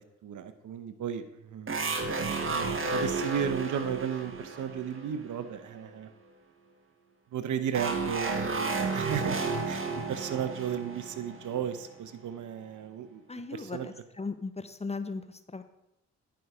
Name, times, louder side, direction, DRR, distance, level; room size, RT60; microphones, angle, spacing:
voice 1, 0.0-6.1 7.3-9.8 10.1-13.2 13.5-13.9, right 8 dB, 65° right, 10 dB, 0.9 m, -35 dB
sound 1, 1.7-5.6 7.7-12.1, right 3 dB, 40° right, 1.4 m, -32 dB
voice 2, 13.3-15.6, left 3 dB, 20° left, 10 dB, 0.7 m, -37 dB
10.5 x 5.7 x 4.9 m, 0.87 s
supercardioid pair, 50°, 33 cm